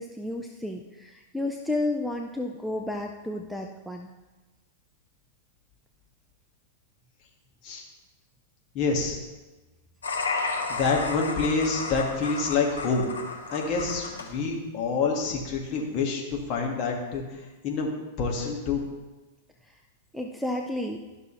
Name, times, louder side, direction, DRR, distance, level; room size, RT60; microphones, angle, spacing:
voice 1, 0.0-4.1 19.7-19.8 20.1-21.0, left 2 dB, ahead, 1 dB, 0.5 m, -32 dB
voice 2, 8.7-9.2 10.7-13.1 13.5-17.9 18.2-18.9, left 4 dB, 35° left, 0 dB, 1.8 m, -27 dB
sound 1, 10.0-14.3, left 3 dB, 70° left, 1.1 m, -33 dB
12.0 x 6.0 x 3.2 m, 1.2 s
figure-of-eight pair, 95°, 0 cm